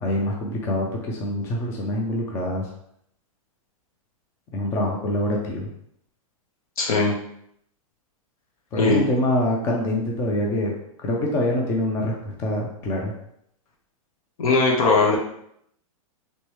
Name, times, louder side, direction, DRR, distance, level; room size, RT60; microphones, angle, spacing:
voice 1, 0.0-2.7 4.5-5.7 8.7-10.7 11.0-13.1, left 1 dB, 15° left, 0 dB, 0.4 m, -25 dB
voice 2, 6.8-7.1 8.8-9.0 14.4-15.2, left 3 dB, 75° left, -1 dB, 1.1 m, -19 dB
3.1 x 3.1 x 3.1 m, 0.72 s
supercardioid pair, 160°, 18 cm